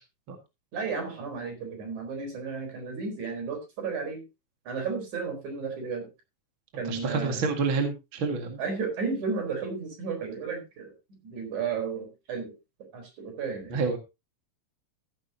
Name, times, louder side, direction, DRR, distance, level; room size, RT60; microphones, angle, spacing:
voice 1, 0.7-4.2 4.7-6.1 6.8-7.4 8.6-10.9 11.2-12.5 12.9-13.8, right 5 dB, 60° right, 4 dB, 5.6 m, -33 dB
voice 2, 6.9-8.6 13.7-14.0, right 4 dB, 40° right, 4 dB, 2.3 m, -28 dB
15.0 x 11.0 x 2.8 m, 0.25 s
omnidirectional pair, 3.9 m